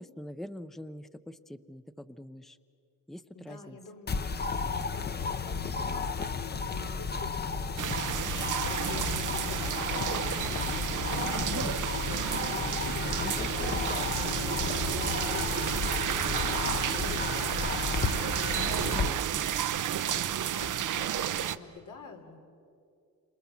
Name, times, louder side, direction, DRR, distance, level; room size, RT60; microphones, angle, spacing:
voice 1, 0.0-2.6 3.1-3.8 18.8-19.5, left 1 dB, ahead, 12 dB, 0.6 m, -44 dB
voice 2, 3.3-4.2 4.8-18.9 20.1-22.4, left 4 dB, 90° left, 3 dB, 3.7 m, -46 dB
sound 1, 4.1-19.1, left 5 dB, 35° left, 0.9 m, -33 dB
sound 2, 7.8-21.6, right 10 dB, 85° right, 0.9 m, -31 dB
sound 3, 9.0-9.4 11.2-11.6 13.7-14.1 16.4-16.6 18.5-18.8 20.6-20.9, left 1 dB, 70° left, 3.2 m, -47 dB
30.0 x 27.0 x 7.1 m, 2.4 s
wide cardioid pair, 130°, 30 cm